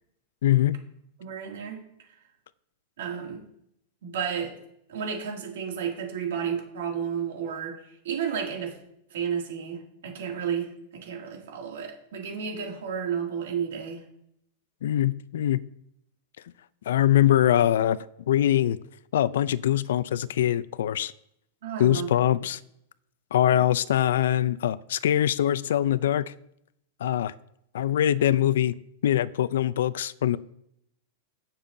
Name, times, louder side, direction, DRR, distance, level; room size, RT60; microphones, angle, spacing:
voice 1, 0.4-0.8 14.8-15.6 16.9-18.0 18.3-18.8 19.1-21.1 21.8-22.6 23.3-26.3 27.0-27.3 27.7-28.7 29.0-30.4, left 11 dB, 80° left, 17 dB, 0.4 m, -23 dB
voice 2, 1.2-1.8 2.1-2.2 3.0-3.5 4.0-4.6 4.9-8.8 9.1-14.0 21.6-22.1 23.5-23.6, right 7 dB, 75° right, 1 dB, 2.5 m, -32 dB
16.0 x 7.0 x 2.7 m, 0.73 s
supercardioid pair, 170°, 0 cm